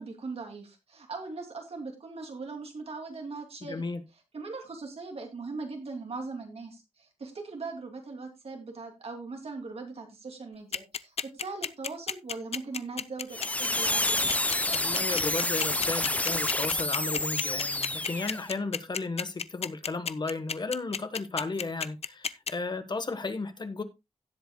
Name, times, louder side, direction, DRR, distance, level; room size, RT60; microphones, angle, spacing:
voice 1, 0.0-3.8 4.3-14.2, right 3 dB, 60° right, 2.8 m, -40 dB
voice 2, 3.6-4.0 14.7-23.8, left 3 dB, 40° left, 1.2 m, -34 dB
sound 1, 10.7-22.5, left 6 dB, 65° left, 0.6 m, -31 dB
sound 2, 13.3-18.5, left 1 dB, 10° left, 0.6 m, -29 dB
17.0 x 7.9 x 2.2 m
wide cardioid pair, 140°, 11 cm